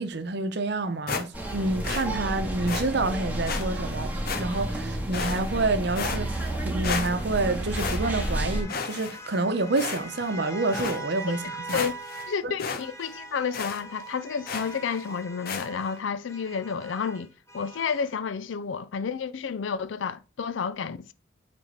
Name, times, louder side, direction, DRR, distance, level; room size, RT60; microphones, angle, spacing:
voice 1, 0.0-6.4 6.6-11.8 12.4-12.5, right 2 dB, 60° right, 0.8 m, -28 dB
sound 1, 1.1-1.6 1.8-2.1 2.7-2.9 3.5-3.6 4.3-4.7 5.1-5.6 6.0-6.6 6.8-7.4 7.7-8.4 8.7-9.4 9.8-10.3 10.7-11.0 11.4-11.5 11.7-12.3 12.6-12.8 13.1-13.2 13.5-13.8 14.5-14.8 15.5-15.7, left 5 dB, 55° left, 0.9 m, -33 dB
sound 2, 1.3-8.6, right 1 dB, 10° right, 1.8 m, -31 dB
sound 3, 6.1-12.5 12.8-18.1, right 2 dB, 15° left, 0.7 m, -43 dB
voice 2, 12.3-17.3 17.5-21.1, left 6 dB, 85° left, 0.4 m, -30 dB
9.0 x 3.5 x 4.2 m
head